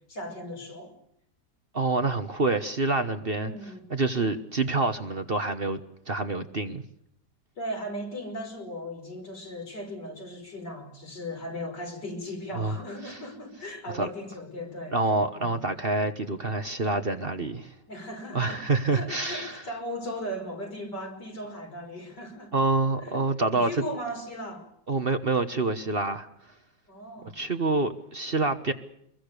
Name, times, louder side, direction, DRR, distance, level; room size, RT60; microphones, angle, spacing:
voice 1, 0.1-0.9 3.3-3.8 7.6-15.0 15.4-15.6 17.9-18.6 18.9-22.5 23.0-23.2 23.5-24.7 26.9-27.3, equal, 80° left, 2 dB, 5.9 m, -37 dB
voice 2, 1.7-3.5 3.9-5.8 6.1-6.8 12.5-12.8 13.0-13.2 13.9-14.1 14.9-17.7 18.3-19.6 22.5-23.7 24.9-26.3 27.3-28.7, right 3 dB, 35° right, 8 dB, 1.3 m, -27 dB
25.5 x 22.0 x 6.8 m, 0.72 s
omnidirectional pair, 1.8 m